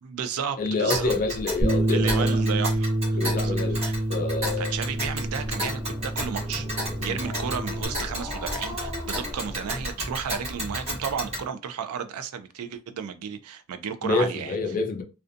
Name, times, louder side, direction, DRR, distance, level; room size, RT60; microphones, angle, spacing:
voice 1, 0.0-1.1 1.9-4.0 4.6-6.7 7.0-14.6, right 7 dB, 80° right, 0.4 m, -33 dB
voice 2, 0.6-2.4 3.1-3.8 4.1-4.7 7.0-7.2 14.0-15.0, left 3 dB, 35° left, 0.3 m, -27 dB
Tick, 0.9-11.5, equal, 30° right, 1.1 m, -33 dB
Bass guitar, 1.6-7.9, right 1 dB, 55° right, 1.1 m, -27 dB
Growling, 5.2-10.4, left 1 dB, 5° left, 0.7 m, -40 dB
2.5 x 2.2 x 2.5 m
head